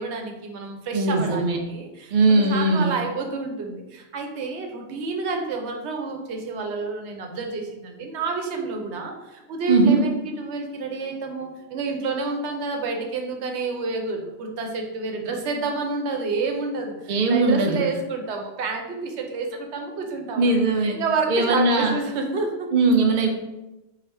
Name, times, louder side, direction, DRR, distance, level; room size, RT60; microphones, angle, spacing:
voice 1, 0.0-22.7, right 4 dB, 90° right, 3 dB, 0.9 m, -29 dB
voice 2, 0.9-1.6 2.1-2.9 9.7-10.0 17.1-17.8 20.4-21.0 21.3-22.0 22.7-23.3, right 3 dB, 55° right, 2 dB, 0.7 m, -19 dB
4.0 x 2.1 x 4.1 m, 0.99 s
omnidirectional pair, 1.1 m